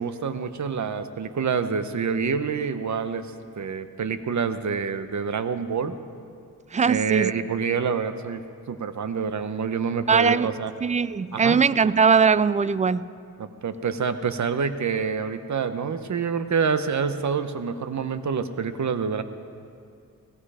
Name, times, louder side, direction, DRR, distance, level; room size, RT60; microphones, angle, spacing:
voice 1, 0.0-6.0 6.9-10.7 11.3-11.6 13.4-19.2, right 6 dB, 50° right, 11 dB, 1.0 m, -27 dB
voice 2, 6.7-7.3 10.1-10.5 10.8-13.1, right 6 dB, 20° right, 18 dB, 0.4 m, -20 dB
17.0 x 16.0 x 5.0 m, 2.3 s
cardioid pair, 75°, 36 cm